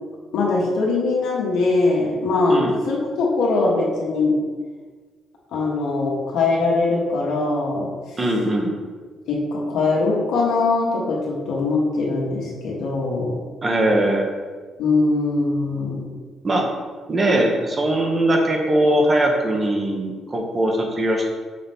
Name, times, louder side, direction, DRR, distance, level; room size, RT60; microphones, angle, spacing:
voice 1, 0.3-4.4 5.5-7.9 9.3-13.3 14.8-16.0, left 3 dB, 85° left, -4 dB, 1.6 m, -21 dB
voice 2, 8.2-8.7 13.6-14.3 16.4-16.7 17.1-21.3, right 1 dB, 35° right, 1 dB, 1.1 m, -20 dB
6.6 x 4.1 x 3.6 m, 1.4 s
cardioid pair, 90°, 0 cm